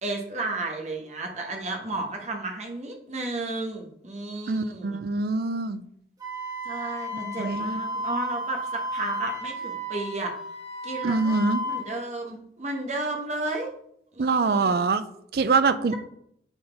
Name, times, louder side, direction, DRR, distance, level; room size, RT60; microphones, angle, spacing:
voice 1, 0.0-5.0 6.6-10.3 10.8-11.4 11.6-13.7 14.1-14.8, right 2 dB, 40° right, 1 dB, 1.1 m, -33 dB
voice 2, 4.5-5.8 7.2-7.8 11.0-11.6 14.2-15.0 15.3-15.9, right 4 dB, 55° right, 12 dB, 0.4 m, -24 dB
Wind instrument woodwind instrument, 6.2-11.9, equal, 20° right, 1.6 m, -33 dB
8.9 x 4.0 x 3.4 m, 0.73 s
head